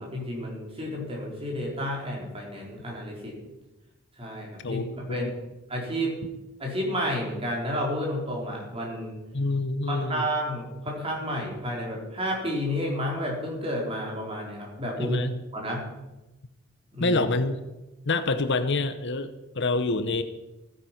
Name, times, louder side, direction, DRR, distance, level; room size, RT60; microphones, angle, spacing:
voice 1, 0.0-3.4 4.2-4.8 5.1-5.3 5.7-6.2 6.6-9.2 9.9-15.2 15.5-15.9 16.9-17.2, equal, 30° right, -1 dB, 4.1 m, -31 dB
voice 2, 4.6-5.3 9.3-10.2 15.0-15.3 17.0-17.6 18.1-20.2, left 3 dB, 60° left, 10 dB, 0.9 m, -27 dB
15.5 x 9.4 x 5.9 m, 1.0 s
head